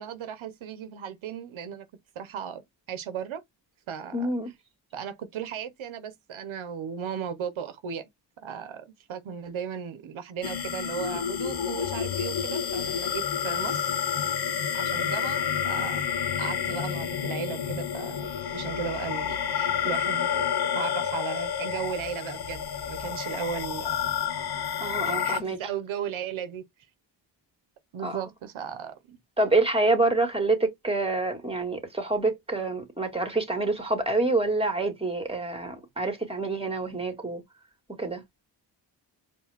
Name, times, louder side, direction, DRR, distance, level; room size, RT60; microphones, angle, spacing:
voice 1, 0.0-1.9 2.1-2.6 2.9-3.4 3.9-4.3 4.9-8.1 8.4-13.9 14.7-16.0 16.4-20.5 20.7-24.0 25.0-26.6 27.9-29.2, right 8 dB, 85° right, 1.0 m, -36 dB
voice 2, 4.1-4.5 24.8-25.6 28.0-28.2 29.4-37.4 38.0-38.2, right 2 dB, 10° right, 2.1 m, -27 dB
sound 1, 10.4-25.4, left 8 dB, 55° left, 0.9 m, -29 dB
4.7 x 2.6 x 3.5 m
cardioid pair, 65°, 47 cm